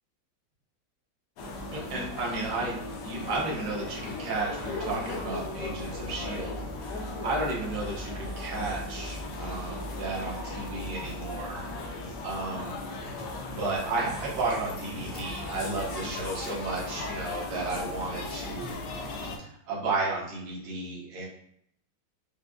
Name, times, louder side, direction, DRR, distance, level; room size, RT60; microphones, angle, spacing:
sound 1, 1.4-19.4, left 2 dB, 70° left, 1.1 m, -37 dB
voice 1, 1.7-12.8 13.5-18.8 19.4-21.3, right 3 dB, 65° right, -4 dB, 1.5 m, -33 dB
5.0 x 2.2 x 2.3 m, 0.70 s
omnidirectional pair, 2.1 m